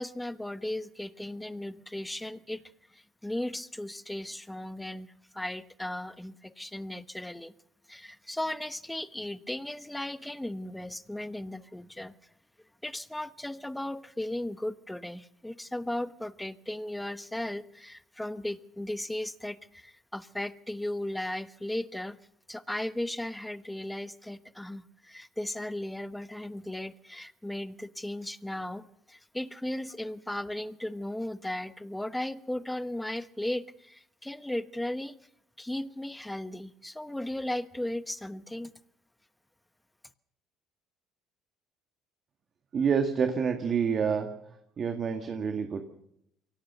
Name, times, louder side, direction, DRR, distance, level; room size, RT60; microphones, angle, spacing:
voice 1, 0.0-2.6 2.9-7.5 7.9-12.2 12.8-22.2 22.5-35.1 35.6-38.7, left 1 dB, 5° left, 13 dB, 1.1 m, -36 dB
voice 2, 42.7-44.3 44.8-45.8, right 6 dB, 45° right, 5 dB, 2.0 m, -27 dB
24.0 x 17.0 x 6.9 m, 0.75 s
supercardioid pair, 90°, 0 cm